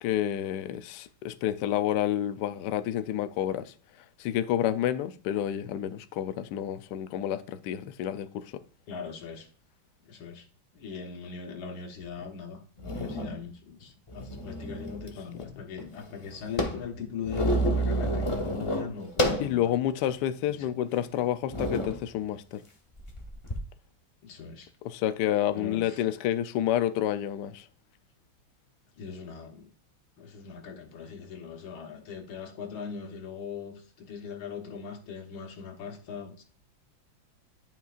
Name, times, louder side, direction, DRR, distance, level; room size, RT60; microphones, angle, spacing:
voice 1, 0.0-3.7 4.2-8.6 19.4-22.6 24.8-27.7, left 11 dB, 70° left, 1.0 m, -29 dB
voice 2, 8.9-9.5 10.0-10.5 10.7-19.7 20.5-20.7 24.2-24.7 25.5-26.0 29.0-29.7 30.2-36.4, left 6 dB, 90° left, 2.1 m, -40 dB
sound 1, 12.2-12.3 12.8-13.4 14.1-15.1 15.4-15.5 15.8-19.6 20.1-20.2 20.9-21.0 21.5-22.0 23.0-23.6, equal, 25° left, 0.6 m, -29 dB
11.5 x 5.5 x 2.4 m
omnidirectional pair, 2.2 m